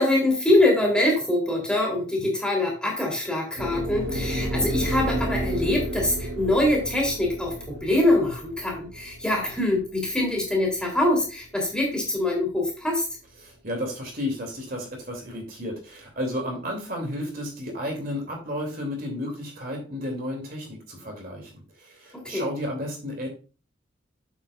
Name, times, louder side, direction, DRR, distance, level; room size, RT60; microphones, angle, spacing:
voice 1, 0.0-13.0 22.2-22.4, left 1 dB, 5° left, -1 dB, 3.1 m, -24 dB
sound 1, 3.6-11.8, right 1 dB, 70° right, 2.2 m, -31 dB
voice 2, 13.4-21.5 21.8-23.3, left 1 dB, 45° right, 1 dB, 2.6 m, -32 dB
8.7 x 7.9 x 2.4 m, 0.35 s
head